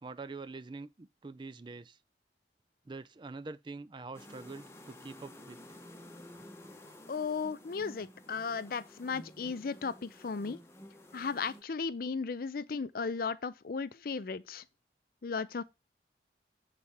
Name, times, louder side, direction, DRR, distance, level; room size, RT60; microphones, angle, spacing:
voice 1, 0.0-2.0 2.9-5.6, right 3 dB, 25° right, 0.4 m, -45 dB
sound 1, 4.1-11.6, left 1 dB, 15° left, 0.9 m, -52 dB
voice 2, 7.1-10.6 11.1-14.6 15.2-15.6, left 5 dB, 55° left, 0.5 m, -35 dB
7.3 x 4.1 x 4.7 m
head